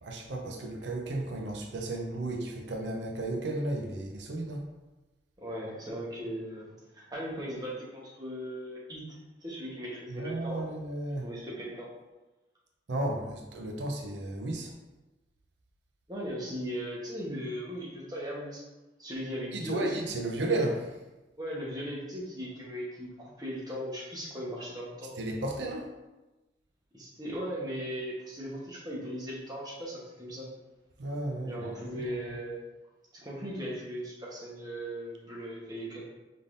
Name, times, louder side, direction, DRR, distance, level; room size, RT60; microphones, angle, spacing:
voice 1, 0.0-4.6 10.1-11.3 12.9-14.7 19.5-20.9 25.2-25.9 31.0-31.7 32.3-32.4, right 2 dB, 85° right, 1 dB, 0.6 m, -33 dB
voice 2, 5.4-10.7 11.2-11.9 16.1-18.7 19.0-19.9 21.4-25.1 26.9-30.5 31.4-32.6 33.1-36.0, equal, 20° right, -5 dB, 1.1 m, -38 dB
5.2 x 3.6 x 2.6 m, 1.1 s
head